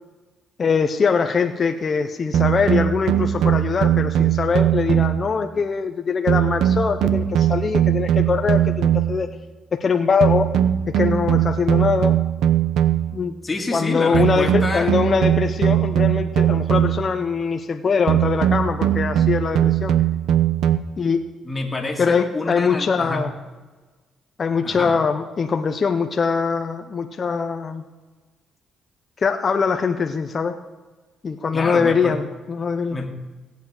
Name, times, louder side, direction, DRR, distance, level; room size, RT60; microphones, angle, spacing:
voice 1, 0.6-9.3 9.8-10.5 10.9-12.2 13.1-13.3 13.7-19.9 21.0-21.2 22.0-23.3 24.4-27.8 29.2-30.6 31.2-33.0, left 5 dB, 40° left, 5 dB, 0.7 m, -22 dB
sound 1, 2.3-5.3 6.3-9.3 10.2-13.2 14.1-17.1 18.1-20.8, right 10 dB, 80° right, 0.7 m, -20 dB
voice 2, 13.4-14.9 21.4-23.3 24.6-25.0 31.5-32.2 32.9-33.1, left 2 dB, 20° left, 0 dB, 2.1 m, -27 dB
16.5 x 8.1 x 4.9 m, 1.3 s
cardioid pair, 90°, 0 cm